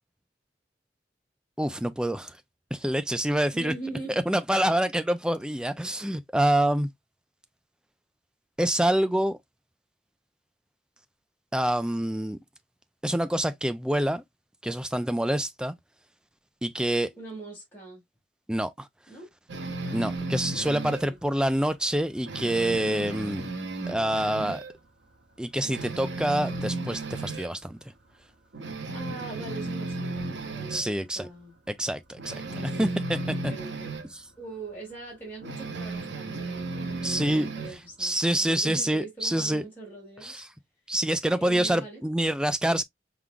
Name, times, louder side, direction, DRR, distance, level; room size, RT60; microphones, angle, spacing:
voice 1, 1.6-2.4 2.7-3.7 4.3-6.9 8.6-9.4 11.5-12.4 13.0-14.2 14.6-15.7 16.6-17.1 18.5-18.9 19.9-23.5 23.9-24.6 25.4-27.8 30.7-31.3 31.7-32.4 32.8-33.2 37.0-37.5 38.0-39.7 40.2-40.5 40.9-42.8, right 1 dB, 5° right, 0.4 m, -26 dB
voice 2, 3.5-4.2 17.2-18.0 19.1-19.3 19.8-20.1 20.8-21.2 28.9-31.6 32.5-33.0 33.3-34.0 34.4-40.4 41.4-42.1, right 2 dB, 10° left, 2.2 m, -42 dB
sound 1, 19.5-21.1 21.5-21.7 22.0-24.8 25.1-25.2 25.6-27.5 28.0-28.1 28.5-30.9 32.2-34.1 35.4-37.8, right 2 dB, 90° right, 1.0 m, -34 dB
4.7 x 3.8 x 2.3 m
head